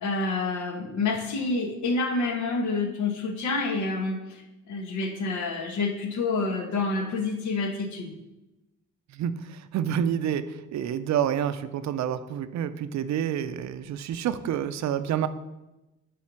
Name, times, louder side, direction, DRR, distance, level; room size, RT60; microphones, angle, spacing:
voice 1, 0.0-8.1, left 3 dB, 75° left, 5 dB, 1.2 m, -28 dB
voice 2, 9.1-15.3, right 9 dB, 65° right, 12 dB, 0.5 m, -28 dB
7.5 x 3.5 x 5.9 m, 1.0 s
cardioid pair, 90°, 30 cm